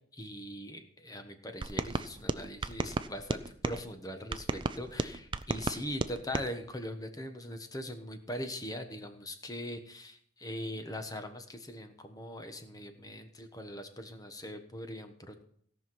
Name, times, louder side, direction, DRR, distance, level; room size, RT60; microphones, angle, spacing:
voice 1, 0.1-15.4, left 1 dB, 20° left, 7 dB, 1.2 m, -41 dB
sound 1, 1.6-3.8 4.3-6.5, right 3 dB, 25° right, 0.5 m, -34 dB
17.0 x 5.8 x 6.1 m, 0.63 s
head